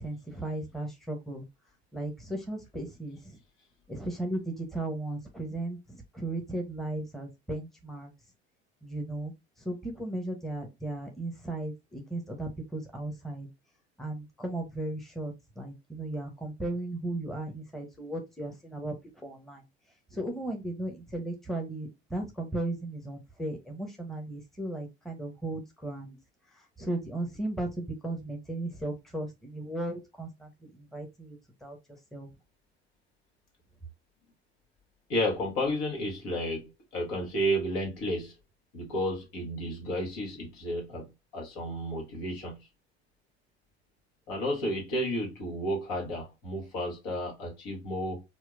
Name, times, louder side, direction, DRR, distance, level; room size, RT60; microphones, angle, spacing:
voice 1, 0.0-1.4 1.9-3.4 3.9-8.1 8.8-13.5 14.0-19.6 20.1-26.2 26.5-31.8 32.1-32.3, right 2 dB, ahead, 0.9 m, -36 dB
voice 2, 35.1-38.3 38.7-41.1 41.3-42.6 44.3-48.2, equal, 65° left, 1.6 m, -32 dB
4.3 x 2.2 x 2.4 m
hypercardioid pair, 65°, 33 cm